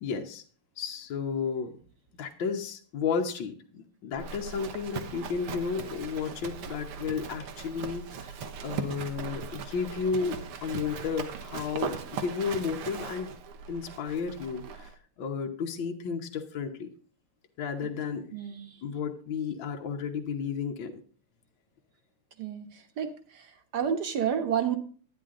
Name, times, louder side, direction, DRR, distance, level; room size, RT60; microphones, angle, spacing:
voice 1, 0.0-0.4 0.8-1.8 2.2-8.3 8.6-13.3 13.7-14.9 15.2-16.9 17.6-18.3 18.8-21.0, left 6 dB, 65° left, 2 dB, 1.8 m, -33 dB
Livestock farm animals working animals, 4.2-14.9, right 6 dB, 80° right, 2.0 m, -39 dB
voice 2, 18.3-18.8 22.4-22.7 23.0-24.8, right 8 dB, 50° right, 7 dB, 1.7 m, -30 dB
11.5 x 10.0 x 3.7 m, 0.42 s
omnidirectional pair, 2.4 m